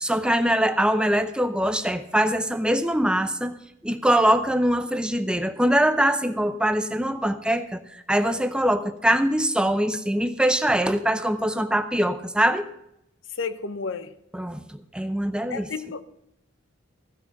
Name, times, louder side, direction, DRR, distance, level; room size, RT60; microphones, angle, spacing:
voice 1, 0.0-3.6 3.8-12.7 14.3-15.7, right 1 dB, 5° right, 0.5 m, -23 dB
voice 2, 13.3-14.2 15.5-16.0, left 4 dB, 70° left, 0.7 m, -31 dB
15.0 x 5.8 x 7.1 m
head